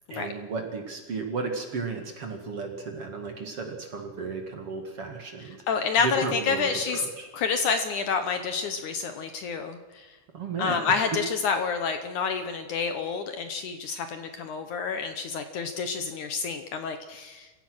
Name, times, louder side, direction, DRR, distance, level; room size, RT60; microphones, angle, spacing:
voice 1, 0.1-5.6 6.0-7.3 10.3-10.9, right 4 dB, 45° right, 4 dB, 2.4 m, -34 dB
voice 2, 5.7-7.1 7.3-10.2 10.6-17.5, left 5 dB, 65° left, 8 dB, 2.2 m, -28 dB
27.5 x 16.0 x 6.3 m, 1.2 s
omnidirectional pair, 4.4 m